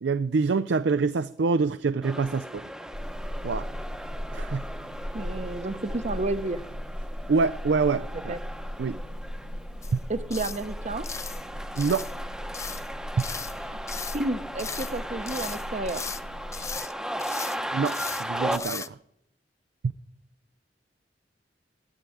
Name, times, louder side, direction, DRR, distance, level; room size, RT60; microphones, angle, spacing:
voice 1, 0.0-2.6 3.4-3.7 4.3-4.7 7.3-8.4 8.8-9.0 9.9-10.0 11.8-12.1 17.7-19.0, right 4 dB, 70° right, 14 dB, 0.4 m, -26 dB
sound 1, 2.0-18.6, equal, 5° right, 0.8 m, -37 dB
sound 2, 2.9-16.8, equal, 70° left, 2.3 m, -38 dB
voice 2, 5.1-6.6 8.3-8.4 10.1-11.1 14.1-16.0, right 2 dB, 40° right, 13 dB, 0.8 m, -31 dB
sound 3, 9.8-10.0 10.3-10.6 11.0-11.4 11.8-12.2 12.5-12.9 13.2-13.6 13.9-14.2 14.6-15.0 15.3-16.2 16.5-16.9 17.2-17.6 17.8-18.2 18.5-18.9, left 5 dB, 15° left, 0.4 m, -37 dB
12.5 x 8.3 x 9.8 m, 0.77 s
head